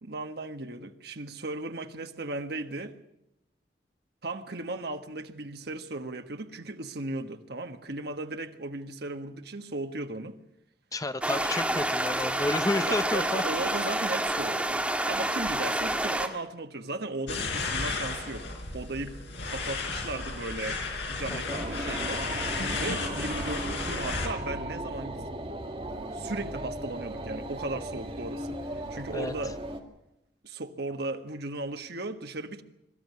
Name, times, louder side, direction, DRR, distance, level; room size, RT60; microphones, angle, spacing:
voice 1, 0.0-3.0 4.2-10.4 12.8-14.8 15.1-18.5 18.7-19.2 19.4-20.8 21.1-22.3 22.8-25.2 26.1-29.6 30.4-32.6, right 2 dB, 65° right, 1.4 m, -36 dB
voice 2, 10.9-13.4 21.3-21.6 29.1-29.3, left 2 dB, 20° left, 0.7 m, -31 dB
sound 1, 11.2-16.3, right 1 dB, 5° right, 1.8 m, -28 dB
sound 2, 17.3-24.3, left 3 dB, 75° left, 4.4 m, -33 dB
sound 3, 21.5-29.8, right 1 dB, 35° right, 2.1 m, -37 dB
23.0 x 13.0 x 9.5 m
head